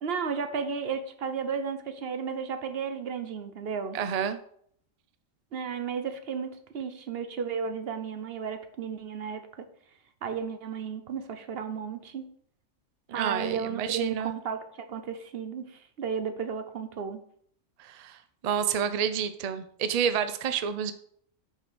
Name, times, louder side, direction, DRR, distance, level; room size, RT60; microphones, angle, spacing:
voice 1, 0.0-4.0 5.5-9.4 10.2-12.3 13.1-17.2, right 6 dB, 55° right, 8 dB, 0.9 m, -33 dB
voice 2, 3.9-4.4 13.1-14.4 17.8-20.9, right 8 dB, 75° right, 10 dB, 0.3 m, -29 dB
6.1 x 4.7 x 6.2 m, 0.64 s
omnidirectional pair, 1.4 m